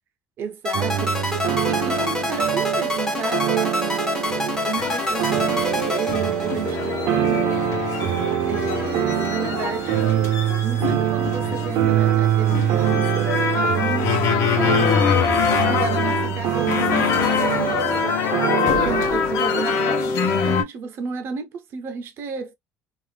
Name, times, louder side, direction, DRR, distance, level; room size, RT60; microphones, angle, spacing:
voice 1, 0.4-14.3 14.6-14.9 15.7-22.5, right 6 dB, 45° right, 0.7 m, -33 dB
sound 1, 0.6-6.9, left 2 dB, 10° left, 0.7 m, -26 dB
sound 2, 0.7-19.1, right 11 dB, 85° right, 0.7 m, -24 dB
sound 3, 4.8-20.6, left 6 dB, 55° left, 0.9 m, -24 dB
2.6 x 2.4 x 3.3 m
cardioid pair, 175°, 6 cm